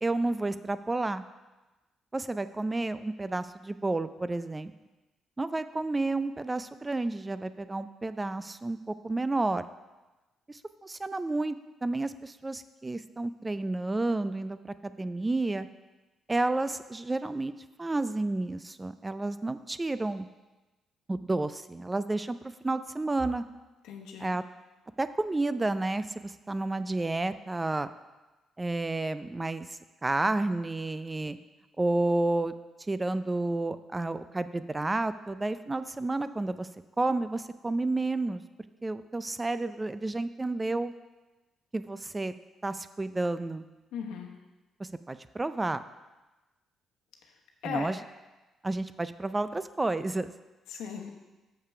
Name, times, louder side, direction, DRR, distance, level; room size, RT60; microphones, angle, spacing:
voice 1, 0.0-1.2 2.1-4.7 5.4-9.6 10.5-15.7 16.3-17.5 17.8-20.3 21.1-23.4 24.2-24.4 25.0-27.9 28.6-31.4 31.8-32.5 32.9-36.7 37.0-38.4 38.8-40.9 41.7-42.3 42.6-43.6 44.8-45.8 47.6-48.0 48.6-50.3, right 2 dB, 20° right, 13 dB, 0.4 m, -31 dB
voice 2, 23.8-24.4 43.9-44.3 47.2-47.9 50.7-51.1, left 7 dB, 90° left, 2 dB, 1.0 m, -38 dB
6.8 x 5.6 x 5.9 m, 1.1 s
cardioid pair, 90°, 0 cm